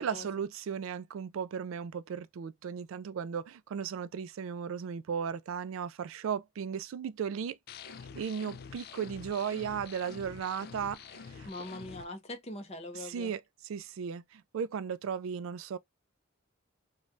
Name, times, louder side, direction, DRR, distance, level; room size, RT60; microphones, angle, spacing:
voice 1, 0.0-7.6 8.2-11.0 11.3-11.5 12.9-15.8, right 7 dB, 75° right, 0.3 m, -36 dB
sound 1, 7.7-12.0, left 6 dB, 45° left, 0.3 m, -47 dB
voice 2, 11.5-13.3, left 1 dB, 30° left, 0.7 m, -42 dB
3.1 x 2.2 x 2.5 m
head